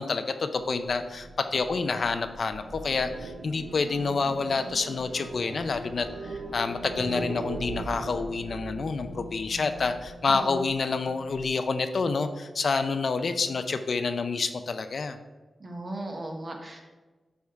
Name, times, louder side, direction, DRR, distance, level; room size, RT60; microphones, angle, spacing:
voice 1, 0.0-15.2, left 4 dB, 55° left, 9 dB, 0.4 m, -28 dB
sound 1, 0.5-11.5, right 2 dB, 75° right, 1.1 m, -40 dB
voice 2, 15.6-16.9, right 1 dB, 35° right, 2 dB, 1.1 m, -37 dB
9.5 x 3.6 x 4.6 m, 1.2 s
wide cardioid pair, 130°, 0 cm